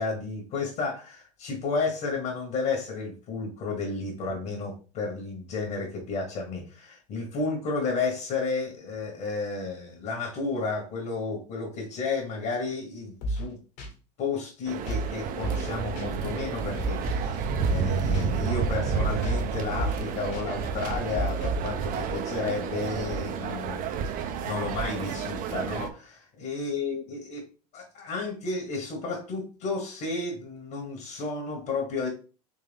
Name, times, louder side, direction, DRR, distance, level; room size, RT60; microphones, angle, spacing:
voice 1, 0.0-13.6 14.2-27.4 27.7-32.1, left 4 dB, 50° left, 1 dB, 1.6 m, -32 dB
sound 1, 13.2-13.5 13.8-13.9 14.9-15.1 15.4-15.7 16.0-16.1 16.8-17.3 17.6-17.9 18.1-18.2 19.0-19.5 19.8-20.0 20.3-20.4 21.1-21.7, right 1 dB, 65° left, 1.8 m, -31 dB
sound 2, 14.7-25.9, right 6 dB, 40° right, 0.7 m, -30 dB
3.9 x 3.3 x 3.5 m, 0.36 s
hypercardioid pair, 90°, 21 cm